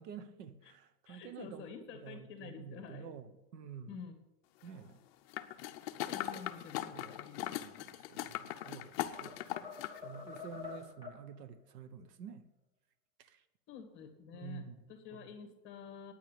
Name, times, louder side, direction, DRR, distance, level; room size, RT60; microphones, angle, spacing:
voice 1, 0.0-4.0 4.6-5.0 6.3-6.4 6.9-12.4 13.2-13.4 14.3-14.8 15.1-15.3, right 7 dB, 75° right, 1.2 m, -50 dB
voice 2, 1.1-3.1 3.9-4.2 6.0-7.6 13.7-16.1, left 6 dB, 25° left, 1.9 m, -49 dB
sound 1, 5.3-10.0 10.4-10.5, left 13 dB, 40° left, 0.7 m, -40 dB
sound 2, 8.3-8.8 9.1-11.3, left 6 dB, 10° right, 1.7 m, -47 dB
9.3 x 9.3 x 8.4 m
supercardioid pair, 155°, 48 cm